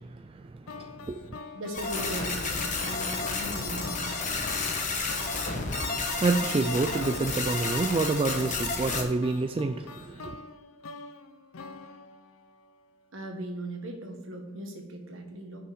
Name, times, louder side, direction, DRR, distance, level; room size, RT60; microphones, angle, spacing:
voice 1, 0.0-1.4 5.7-10.4, right 3 dB, 25° right, 0.3 m, -29 dB
sound 1, 0.7-12.9, left 3 dB, 80° left, 0.6 m, -45 dB
voice 2, 1.5-4.4 13.1-15.6, right 1 dB, 70° right, 1.5 m, -39 dB
sound 2, 1.7-9.0, left 3 dB, 40° left, 1.2 m, -31 dB
6.3 x 5.6 x 7.2 m
head